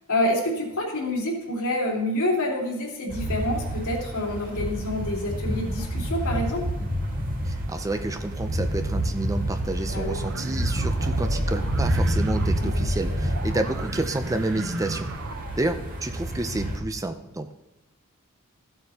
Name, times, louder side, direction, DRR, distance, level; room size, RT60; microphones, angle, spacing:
voice 1, 0.1-6.6 9.9-10.2 12.6-12.7, left 1 dB, 75° left, -3 dB, 2.9 m, -27 dB
sound 1, 3.1-16.8, equal, 40° right, 1.7 m, -29 dB
voice 2, 7.5-15.1 15.6-17.5, right 2 dB, 15° right, 8 dB, 0.5 m, -30 dB
sound 2, 9.9-15.6, right 2 dB, 55° right, 0.9 m, -32 dB
15.5 x 7.9 x 2.8 m, 0.96 s
head